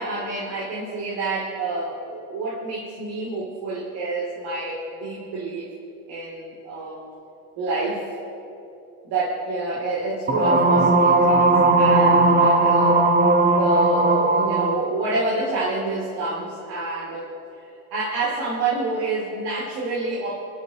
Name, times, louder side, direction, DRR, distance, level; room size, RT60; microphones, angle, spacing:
voice 1, 0.0-5.7 6.1-7.0 7.6-8.1 9.0-13.0 13.5-20.4, right 2 dB, 70° right, -5 dB, 3.3 m, -28 dB
sound 1, 10.3-14.8, right 2 dB, 25° right, 1.4 m, -17 dB
25.0 x 13.0 x 3.1 m, 2.9 s
supercardioid pair, 85°, 42 cm